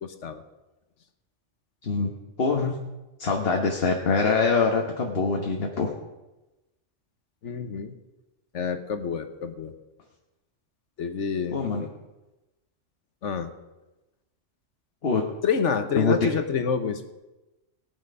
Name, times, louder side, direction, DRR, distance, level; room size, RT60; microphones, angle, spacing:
voice 1, 2.4-2.7 3.2-5.9 11.5-11.9 15.0-15.2 15.9-16.1, left 4 dB, 50° left, 1 dB, 1.4 m, -24 dB
voice 2, 7.4-7.9 8.5-9.7 11.0-11.6 13.2-13.5 15.4-17.1, left 6 dB, 70° left, 8 dB, 1.3 m, -28 dB
18.5 x 8.8 x 5.4 m, 1.0 s
omnidirectional pair, 1.3 m